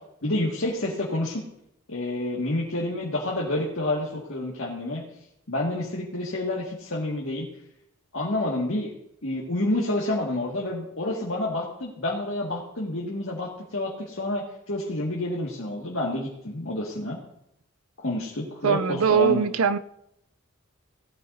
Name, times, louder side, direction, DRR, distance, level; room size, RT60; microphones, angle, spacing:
voice 1, 0.2-1.4 1.9-5.0 5.5-7.5 8.1-8.9 9.2-17.2 18.0-19.5, left 1 dB, 70° left, -4 dB, 1.9 m, -29 dB
voice 2, 18.6-19.8, right 6 dB, 85° right, 12 dB, 0.5 m, -21 dB
18.0 x 13.5 x 2.7 m, 0.81 s
head